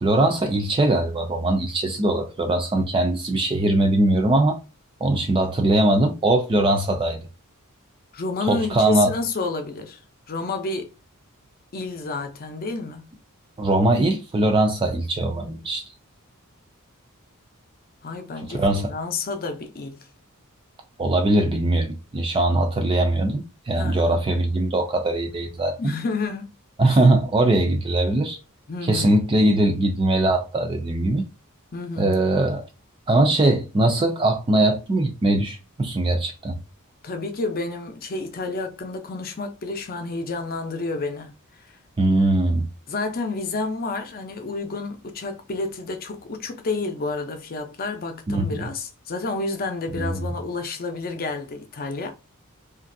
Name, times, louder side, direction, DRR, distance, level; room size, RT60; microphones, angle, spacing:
voice 1, 0.0-4.6 5.0-7.2 8.4-9.1 13.6-15.8 18.5-18.9 21.0-25.9 26.8-28.4 28.8-31.2 32.0-32.6 33.1-36.6 42.0-42.7 48.3-48.6 50.0-50.2, right 1 dB, 25° right, 0.4 m, -21 dB
voice 2, 8.1-10.0 10.3-10.9 11.7-13.1 18.0-20.0 23.7-24.2 25.8-26.5 26.8-27.0 28.7-29.2 31.7-32.2 37.0-41.3 42.9-52.1, left 3 dB, 45° left, 0.5 m, -30 dB
3.0 x 2.5 x 2.6 m
head